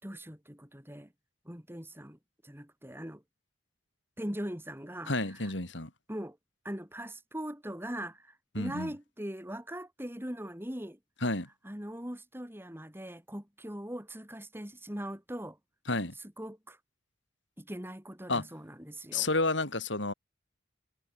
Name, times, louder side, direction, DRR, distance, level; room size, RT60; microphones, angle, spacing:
voice 1, 0.0-1.1 1.4-3.2 4.2-5.5 6.1-6.4 6.6-11.0 11.6-15.6 16.2-16.8 17.6-19.3, equal, 10° right, 4.6 m, -41 dB
voice 2, 5.1-5.9 8.5-8.9 11.2-11.5 15.9-16.1 18.3-18.5 19.1-20.1, left 2 dB, 70° left, 4.6 m, -30 dB
head